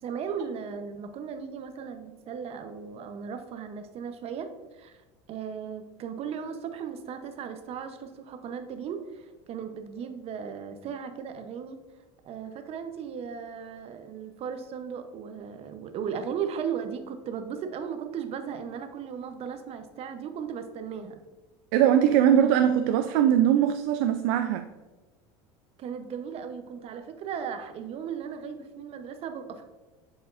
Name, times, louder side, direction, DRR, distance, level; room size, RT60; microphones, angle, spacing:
voice 1, 0.0-4.5 4.8-5.0 5.3-11.8 12.2-21.2 25.8-29.6, right 7 dB, 45° right, 8 dB, 0.8 m, -36 dB
voice 2, 21.7-24.7, right 10 dB, 70° right, 8 dB, 0.4 m, -21 dB
7.9 x 5.0 x 2.5 m, 1.2 s
supercardioid pair, 105°, 14 cm